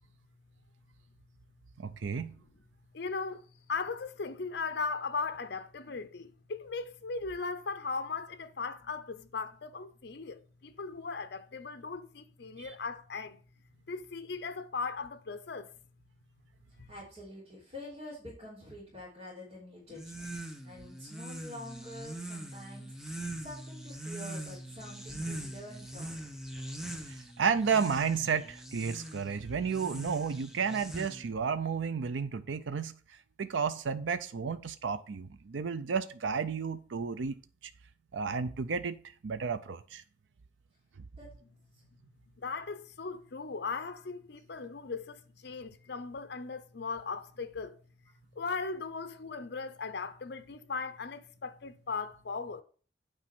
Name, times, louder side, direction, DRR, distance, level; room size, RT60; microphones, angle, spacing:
voice 1, 1.8-2.4 12.6-12.7 27.1-37.3 37.6-37.7 38.1-39.0 39.2-40.0, right 6 dB, 85° right, 0.5 m, -32 dB
voice 2, 2.9-13.4 13.9-15.7 42.4-47.8 48.4-52.6, left 4 dB, 60° left, 0.7 m, -38 dB
voice 3, 16.7-26.3 40.7-40.8 41.1-41.3 41.7-41.8, left 1 dB, 35° right, 3.2 m, -47 dB
sound 1, 19.9-31.4, right 1 dB, 5° right, 0.9 m, -42 dB
8.9 x 4.7 x 6.0 m
head